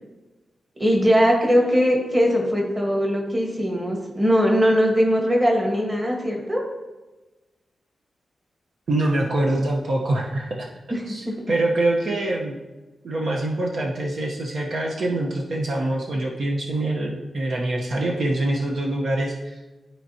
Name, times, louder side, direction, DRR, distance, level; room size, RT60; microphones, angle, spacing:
voice 1, 0.8-6.6 10.9-11.4, equal, 15° right, 0 dB, 1.3 m, -20 dB
voice 2, 8.9-10.7 11.1-12.6 13.0-19.6, right 2 dB, 55° right, -1 dB, 0.8 m, -24 dB
12.0 x 4.5 x 2.8 m, 1.1 s
wide cardioid pair, 175°, 0 cm